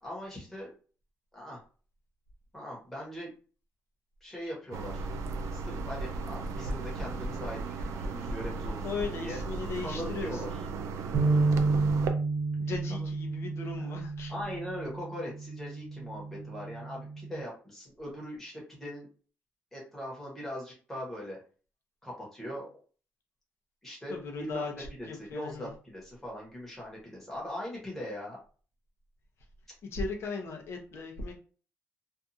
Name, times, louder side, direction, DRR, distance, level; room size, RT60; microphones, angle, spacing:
voice 1, 0.0-0.7 1.3-1.6 2.5-3.3 4.2-5.1 5.5-9.4 9.8-10.5 12.9-13.1 13.8-13.9 14.3-19.1 19.7-21.4 22.0-22.7 23.8-28.4, equal, 5° left, -5 dB, 1.1 m, -40 dB
sound 1, 4.7-12.1, right 3 dB, 80° right, 0.4 m, -36 dB
voice 2, 8.8-10.6 12.6-14.3 24.1-25.7 29.9-31.4, left 4 dB, 55° left, 2 dB, 0.7 m, -37 dB
sound 2, 11.1-17.4, right 3 dB, 65° right, 0.7 m, -30 dB
2.6 x 2.3 x 2.6 m, 0.39 s
cardioid pair, 150°, 5 cm